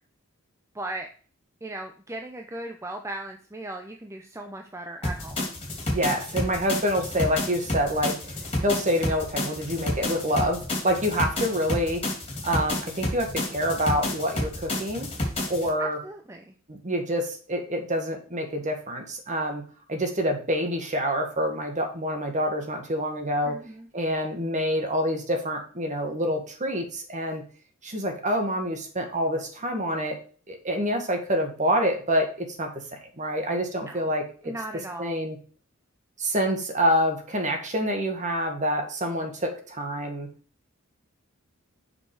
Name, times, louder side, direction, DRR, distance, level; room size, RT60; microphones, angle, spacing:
voice 1, 0.7-1.1 1.6-5.4 15.8-16.5 23.4-23.9 33.8-34.0 34.4-35.2, right 1 dB, 15° right, 4 dB, 0.6 m, -37 dB
sound 1, 5.0-15.7, left 1 dB, 30° left, 2.8 m, -30 dB
voice 2, 5.9-12.0 12.4-15.1 15.5-16.0 16.7-19.6 19.9-23.6 23.9-27.4 27.8-30.2 30.5-34.5 35.0-35.4 36.2-40.3, equal, 35° right, 4 dB, 1.7 m, -27 dB
6.7 x 5.7 x 4.8 m, 0.41 s
head